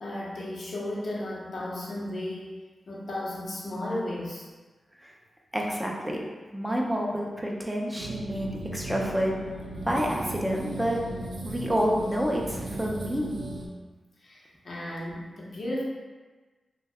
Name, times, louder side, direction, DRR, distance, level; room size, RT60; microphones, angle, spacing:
voice 1, 0.0-2.6 2.9-4.5 11.6-11.7 14.2-15.8, left 1 dB, 65° left, -4 dB, 0.7 m, -34 dB
voice 2, 5.5-6.2 6.5-9.4 9.9-11.0 11.4-13.3, equal, 10° right, -2 dB, 0.5 m, -28 dB
sound 1, 8.0-13.7, right 1 dB, 75° right, 0.4 m, -36 dB
2.6 x 2.2 x 3.4 m, 1.3 s
cardioid pair, 65°, 0 cm